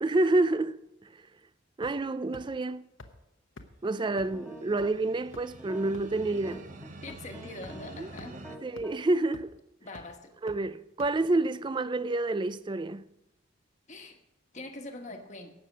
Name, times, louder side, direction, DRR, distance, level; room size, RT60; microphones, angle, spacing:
voice 1, 0.0-0.8 1.8-2.8 3.8-6.6 7.9-8.1 8.6-9.5 10.4-13.0, right 2 dB, 20° right, 0.3 m, -28 dB
sound 1, 1.8-2.1 2.3-2.4 3.0-3.1 3.6-3.7 4.2-4.3 4.8-4.9 5.3-5.6 5.9-6.0 6.5-6.6 7.1-7.2 7.6-7.7 8.2-8.3 8.8-8.9 9.3-9.6 9.9-10.0 10.5-10.6 11.0-11.1, left 2 dB, 60° left, 1.0 m, -46 dB
sound 2, 4.0-4.9 5.6-9.0, equal, ahead, 1.3 m, -48 dB
sound 3, 4.1-8.6, right 3 dB, 35° right, 0.8 m, -48 dB
voice 2, 7.0-8.4 9.8-10.3 13.9-14.2 14.5-15.5, left 2 dB, 35° left, 1.3 m, -43 dB
17.0 x 6.6 x 6.4 m
head